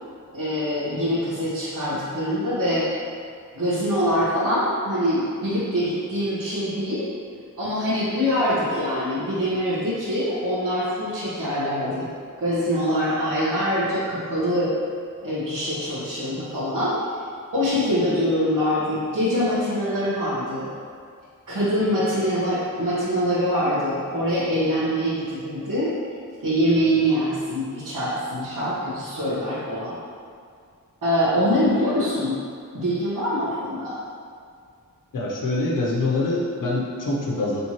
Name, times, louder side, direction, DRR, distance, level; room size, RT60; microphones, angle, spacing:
voice 1, 0.3-2.9 3.5-7.1 7.6-12.1 12.4-14.7 15.2-17.0 17.5-20.7 21.5-25.9 26.4-29.9 31.0-32.4 32.7-34.0, equal, 75° right, -13 dB, 1.3 m, -24 dB
voice 2, 35.1-37.6, left 2 dB, 80° left, -4 dB, 0.8 m, -25 dB
4.3 x 3.4 x 3.0 m, 2.2 s
wide cardioid pair, 100°, 31 cm